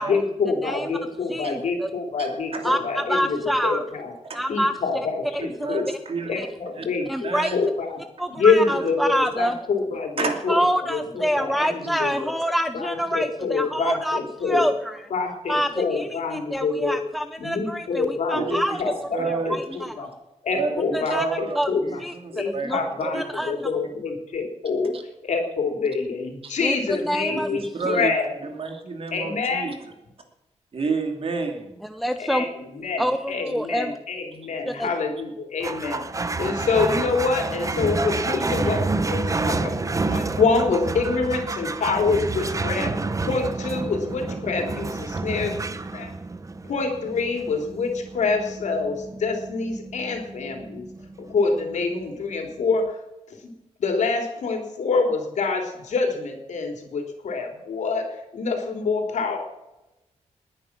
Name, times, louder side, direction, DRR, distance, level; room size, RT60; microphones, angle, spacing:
voice 1, 0.0-4.1 4.5-5.9 6.3-8.0 8.3-10.6 10.9-12.4 12.7-14.7 15.1-17.0 17.4-20.1 20.4-22.0 22.3-24.9 25.2-28.3 29.1-29.8 32.2-36.0 36.4-39.8 40.1-42.9 43.3-46.1 46.6-50.9 51.2-53.0 53.3-53.5 53.8-59.4, left 4 dB, 75° left, 3 dB, 3.5 m, -26 dB
voice 2, 1.3-1.9 2.6-3.8 4.3-4.7 5.7-5.8 6.4-6.5 7.1-7.5 8.2-9.6 10.5-15.1 15.5-18.8 19.3-20.1 20.9-21.3 21.6-21.7 22.0-22.8 23.1-23.7 26.6-27.5 27.8-28.0 31.9-32.5 33.0-34.0 34.7-34.9, equal, ahead, 8 dB, 0.6 m, -26 dB
voice 3, 5.6-6.3 6.7-6.8 7.2-7.6 10.2-10.4 11.6-11.9 18.3-18.6 19.1-19.6 20.5-20.8 21.1-23.5 24.9-25.0 26.4-26.6 27.2-28.1 28.4-29.7 30.7-31.8, right 4 dB, 50° right, 4 dB, 2.9 m, -30 dB
sound 1, 35.6-52.4, right 3 dB, 25° right, 0.9 m, -29 dB
20.0 x 9.8 x 6.1 m, 0.96 s
wide cardioid pair, 120°, 12 cm